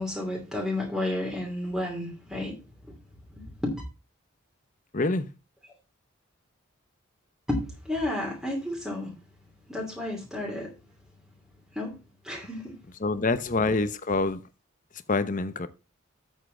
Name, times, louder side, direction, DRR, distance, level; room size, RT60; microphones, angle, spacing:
voice 1, 0.0-2.6 2.9-3.0 3.3-3.8 7.5-9.1 9.7-10.7 11.7-11.9 12.2-12.8, left 1 dB, ahead, 2.8 m, -31 dB
voice 2, 4.9-5.3 13.0-14.4 15.1-15.7, left 3 dB, 40° left, 0.9 m, -26 dB
8.2 x 7.4 x 3.9 m
head